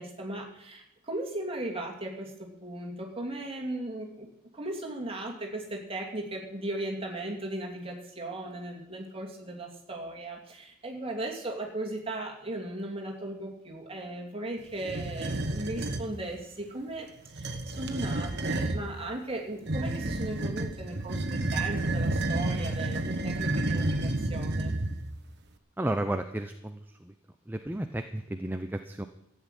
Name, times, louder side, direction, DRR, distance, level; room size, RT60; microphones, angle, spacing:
voice 1, 0.0-4.3 4.5-17.1 17.3-24.8, right 1 dB, 25° right, 1 dB, 2.6 m, -37 dB
sound 1, 14.8-16.1 17.3-18.9 19.7-25.2, right 2 dB, 50° right, 1.2 m, -30 dB
voice 2, 25.8-27.1 27.5-29.1, right 1 dB, 10° right, 7 dB, 0.6 m, -33 dB
13.5 x 8.3 x 9.1 m, 0.79 s
head